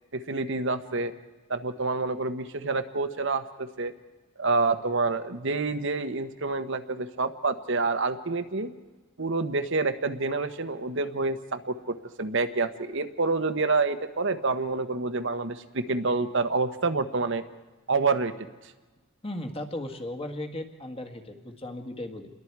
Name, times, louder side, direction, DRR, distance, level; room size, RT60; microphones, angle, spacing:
voice 1, 0.1-1.1 1.5-3.9 4.4-8.7 9.2-17.4 17.9-18.3, right 3 dB, 55° right, 9 dB, 1.1 m, -28 dB
voice 2, 19.2-22.3, left 1 dB, 25° left, 5 dB, 1.8 m, -36 dB
29.0 x 22.0 x 4.8 m, 1.3 s
head